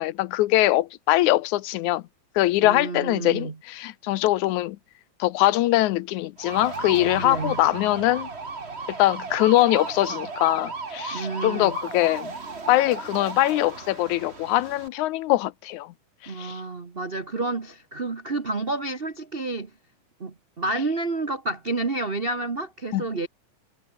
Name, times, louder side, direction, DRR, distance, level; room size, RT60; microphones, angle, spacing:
voice 1, 0.0-2.0 2.4-4.8 5.2-8.3 8.9-12.3 12.7-15.9 16.2-16.6 22.9-23.0, left 16 dB, 85° left, 2.1 m, -22 dB
voice 2, 2.6-3.6 7.2-7.6 11.1-11.7 16.3-19.7 20.2-23.3, right 2 dB, 60° right, 0.6 m, -30 dB
sound 1, 6.4-14.9, right 4 dB, 25° right, 1.8 m, -35 dB
omnidirectional pair, 3.5 m